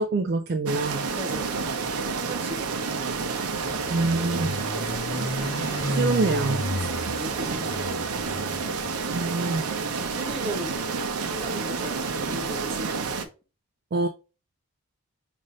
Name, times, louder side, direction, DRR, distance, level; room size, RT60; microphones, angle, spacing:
voice 1, 0.0-1.1 3.9-4.6 5.5-5.7 6.0-6.9 9.1-9.7 13.9-14.1, right 3 dB, 45° right, 0.3 m, -26 dB
sound 1, 0.7-13.3, right 4 dB, 85° right, 0.6 m, -29 dB
voice 2, 1.1-3.5 6.9-8.5 9.9-10.9 11.3-13.2, right 1 dB, 25° right, 0.9 m, -38 dB
sound 2, 3.5-8.9, left 1 dB, 20° left, 0.5 m, -33 dB
5.3 x 2.6 x 3.0 m
head